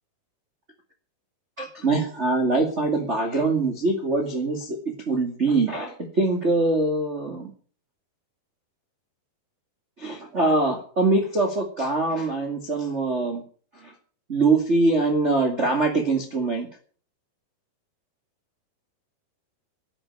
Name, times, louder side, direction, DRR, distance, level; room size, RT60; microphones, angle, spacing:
voice 1, 1.6-4.8 5.1-7.5 10.0-13.4 13.8-13.9 14.3-16.7, right 3 dB, 25° right, 2 dB, 1.9 m, -23 dB
12.0 x 9.8 x 8.5 m, 0.43 s
omnidirectional pair, 4.4 m